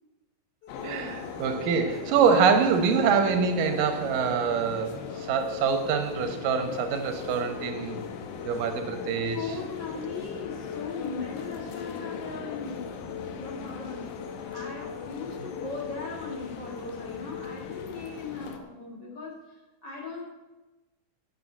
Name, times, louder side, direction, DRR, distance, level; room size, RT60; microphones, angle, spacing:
sound 1, 0.6-18.3, left 7 dB, 65° left, 3.2 m, -42 dB
sound 2, 0.7-18.6, left 6 dB, 90° left, 2.6 m, -40 dB
voice 1, 0.8-5.0 5.3-8.0 8.4-9.4, right 6 dB, 90° right, 6 dB, 2.8 m, -25 dB
voice 2, 9.3-12.9 13.3-14.1 14.4-20.2, left 4 dB, 35° left, -3 dB, 2.2 m, -38 dB
9.5 x 6.6 x 8.3 m, 1.1 s
omnidirectional pair, 3.8 m